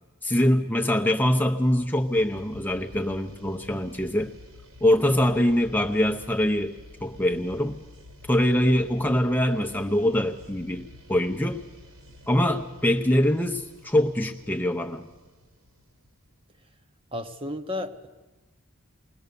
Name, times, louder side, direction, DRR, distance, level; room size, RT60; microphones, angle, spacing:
voice 1, 0.2-4.3 4.8-7.8 8.3-11.6 12.3-15.0, left 1 dB, 10° left, 4 dB, 0.7 m, -23 dB
sound 1, 1.5-16.3, left 1 dB, 85° right, 4.0 m, -50 dB
voice 2, 17.1-18.1, left 1 dB, 25° right, 7 dB, 1.0 m, -33 dB
21.0 x 19.5 x 6.9 m, 1.2 s
head